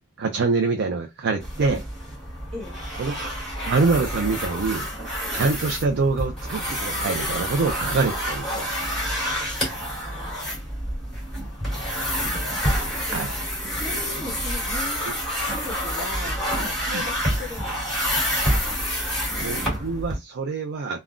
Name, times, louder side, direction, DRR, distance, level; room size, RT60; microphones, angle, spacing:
voice 1, 0.2-1.8 3.0-3.3 3.6-4.8 5.3-8.7 13.1-13.3 16.9-17.0 19.4-21.0, right 4 dB, 50° right, 0.4 m, -25 dB
sound 1, 1.4-20.2, equal, ahead, 2.0 m, -28 dB
voice 2, 9.7-10.6 13.1-13.3 13.7-15.0 15.4-18.2, left 2 dB, 25° right, 1.2 m, -38 dB
3.6 x 2.1 x 2.4 m
head